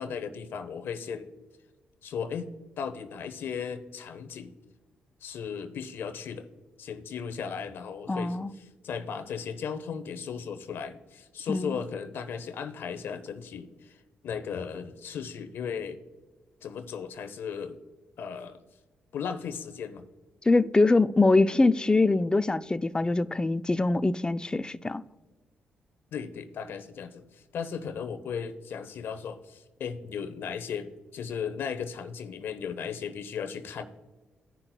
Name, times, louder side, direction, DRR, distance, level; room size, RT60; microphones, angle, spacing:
voice 1, 0.0-1.3 2.0-2.5 2.8-4.5 5.2-6.5 6.8-16.0 16.6-17.8 18.2-18.6 19.1-20.0 26.1-33.8, left 6 dB, 70° left, 0.7 m, -36 dB
voice 2, 8.1-8.5 11.5-11.8 20.5-25.0, left 3 dB, 20° left, 0.4 m, -23 dB
16.0 x 5.7 x 2.2 m
supercardioid pair, 55°, 4 cm